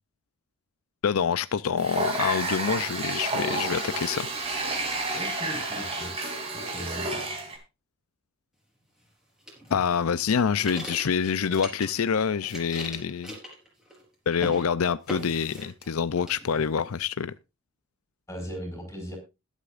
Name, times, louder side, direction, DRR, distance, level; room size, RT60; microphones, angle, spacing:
voice 1, 1.0-4.3 9.7-13.4 14.3-17.3, left 6 dB, 80° left, 0.5 m, -26 dB
Water tap faucet, 1.8-7.6, right 2 dB, 25° right, 2.9 m, -30 dB
voice 2, 5.1-6.1 6.5-7.0 18.3-19.2, equal, 10° left, 5.0 m, -38 dB
sound 1, 9.5-12.1 12.3-14.0 14.3-14.6 15.1-16.0 16.3-17.0, equal, 5° right, 4.3 m, -40 dB
21.0 x 8.2 x 2.5 m
head